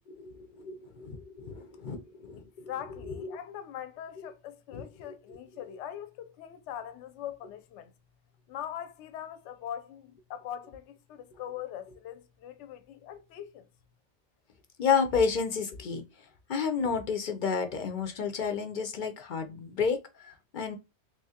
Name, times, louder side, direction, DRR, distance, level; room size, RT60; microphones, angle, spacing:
voice 1, 0.1-2.4 3.2-3.3 4.7-4.9 14.8-16.0 16.5-20.8, left 6 dB, 55° left, 0.6 m, -31 dB
voice 2, 2.4-7.9 8.5-13.7, left 10 dB, 70° left, 0.9 m, -42 dB
3.5 x 3.0 x 2.8 m
omnidirectional pair, 1.3 m